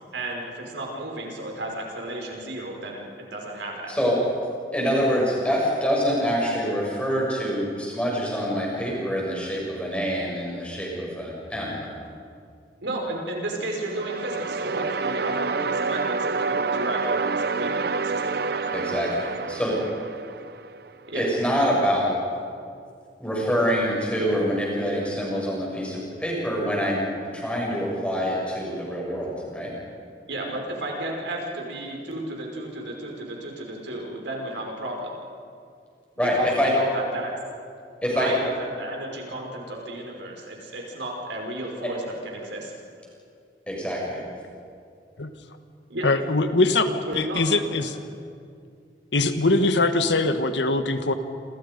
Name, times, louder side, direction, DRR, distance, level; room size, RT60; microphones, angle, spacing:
voice 1, 0.1-4.0 12.8-18.7 21.1-21.3 30.3-35.1 36.2-37.3 38.1-42.7 45.9-46.1 47.1-47.7, right 1 dB, 90° right, 0 dB, 5.5 m, -33 dB
voice 2, 4.7-11.9 18.7-19.8 21.1-22.2 23.2-27.1 27.3-29.7 36.2-36.7 38.0-38.3 43.7-44.2, equal, 5° left, -4 dB, 7.0 m, -25 dB
sound 1, 13.8-20.8, right 4 dB, 60° right, 0.8 m, -28 dB
voice 3, 46.0-48.0 49.1-51.1, left 2 dB, 85° left, 8 dB, 1.6 m, -22 dB
28.5 x 27.5 x 5.4 m, 2.4 s
head